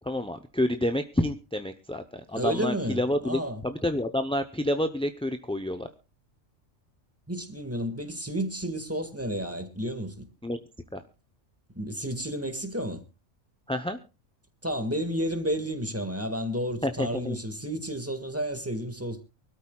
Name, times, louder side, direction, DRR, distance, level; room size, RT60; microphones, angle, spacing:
voice 1, 0.0-5.9 10.4-10.6 10.9-11.0 13.7-14.0 16.8-17.4, left 1 dB, 5° left, 0.6 m, -29 dB
voice 2, 2.3-3.6 7.3-10.2 11.8-13.0 14.6-19.2, equal, 10° right, 1.8 m, -31 dB
24.0 x 13.0 x 2.3 m
omnidirectional pair, 1.4 m